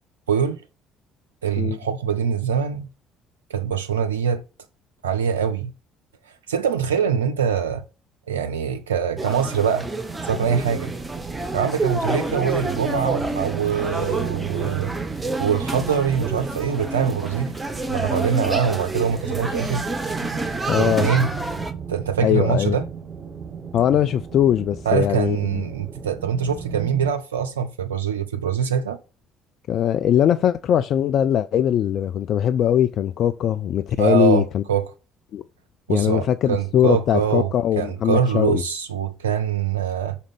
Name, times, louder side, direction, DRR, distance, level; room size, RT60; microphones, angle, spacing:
voice 1, 0.3-0.6 1.4-2.9 3.5-4.4 5.0-5.7 6.3-7.8 8.3-9.9 10.2-10.9 11.5-14.9 15.4-17.6 17.9-19.9 20.7-21.3 21.9-22.9 24.9-29.0 34.0-34.9 35.9-40.2, right 7 dB, 80° right, 0.3 m, -23 dB
sound 1, 9.2-21.7, right 2 dB, 15° right, 1.2 m, -29 dB
sound 2, 10.1-27.1, right 7 dB, 35° right, 1.5 m, -36 dB
voice 2, 20.7-21.1 22.2-22.8 23.7-25.6 29.7-34.6 35.3-35.4 35.9-38.6, left 10 dB, 55° left, 0.3 m, -21 dB
5.0 x 4.2 x 5.4 m
figure-of-eight pair, 50°, 0 cm